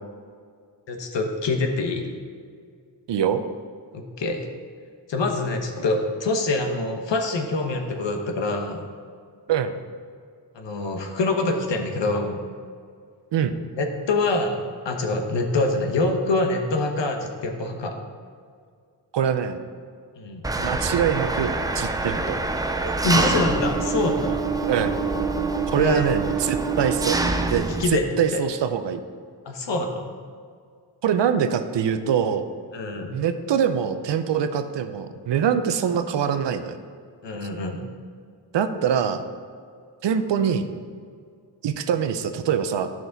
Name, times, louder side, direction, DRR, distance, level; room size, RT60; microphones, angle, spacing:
voice 1, 0.9-2.1 3.9-4.5 5.1-8.9 10.5-12.4 13.8-17.9 20.2-20.4 22.8-24.4 25.7-26.1 27.8-28.0 28.3-28.4 29.4-30.1 32.7-33.2 37.2-37.8, left 2 dB, 70° left, 4 dB, 1.2 m, -25 dB
voice 2, 3.1-3.4 9.5-9.7 13.3-13.6 19.1-19.6 20.6-22.4 24.7-25.0 25.7-27.2 27.5-29.0 31.0-32.5 33.1-36.8 38.5-39.2 40.0-40.7 41.6-42.9, right 8 dB, 70° right, 9 dB, 0.7 m, -24 dB
Engine, 20.4-27.9, right 3 dB, 10° right, 0.3 m, -25 dB
11.0 x 6.1 x 4.0 m, 2.1 s
wide cardioid pair, 150°, 45 cm